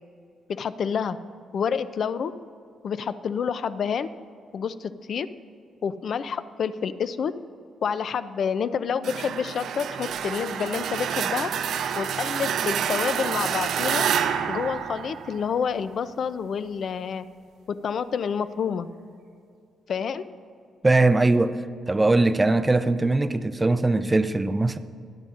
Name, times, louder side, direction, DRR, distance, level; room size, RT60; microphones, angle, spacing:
voice 1, 0.5-1.2 1.5-2.3 2.8-4.1 4.5-5.3 5.8-7.3 7.8-11.5 11.9-14.0 14.5-17.3 17.8-18.9 19.9-20.2, left 7 dB, 55° left, 0.4 m, -28 dB
sound 1, 9.0-15.8, right 8 dB, 75° right, 0.5 m, -28 dB
voice 2, 20.8-21.6 21.9-24.8, right 2 dB, 15° right, 0.4 m, -21 dB
22.0 x 9.2 x 2.5 m
cardioid pair, 115°, 0 cm